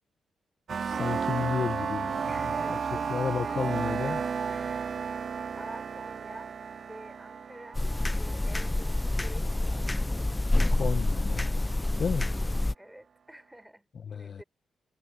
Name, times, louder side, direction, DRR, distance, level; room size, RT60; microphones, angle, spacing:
sound 1, 0.7-9.3, right 6 dB, 60° right, 2.1 m, -33 dB
voice 1, 0.8-2.2 2.7-2.8 3.1-4.2 10.7-11.5 12.0-12.3 14.0-14.4, left 6 dB, 55° left, 1.1 m, -32 dB
voice 2, 2.2-5.3 5.6-7.9 8.2-9.9 12.8-14.4, right 1 dB, 5° right, 6.4 m, -49 dB
sound 2, 7.7-12.7, left 2 dB, 15° left, 0.4 m, -27 dB
cardioid pair, 80°, 0 cm